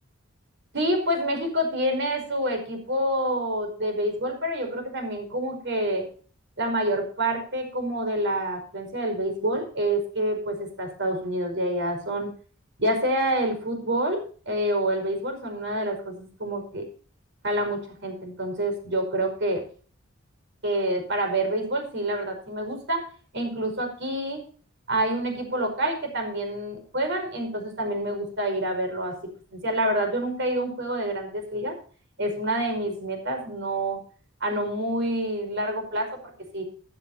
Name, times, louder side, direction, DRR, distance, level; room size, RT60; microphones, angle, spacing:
voice 1, 0.7-6.1 6.6-12.3 12.8-14.2 14.5-16.8 17.4-19.6 20.6-23.0 23.3-24.4 24.9-29.2 29.5-31.7 32.2-34.0 34.4-36.6, right 1 dB, 60° right, 5 dB, 5.2 m, -27 dB
15.0 x 13.5 x 2.8 m, 0.42 s
head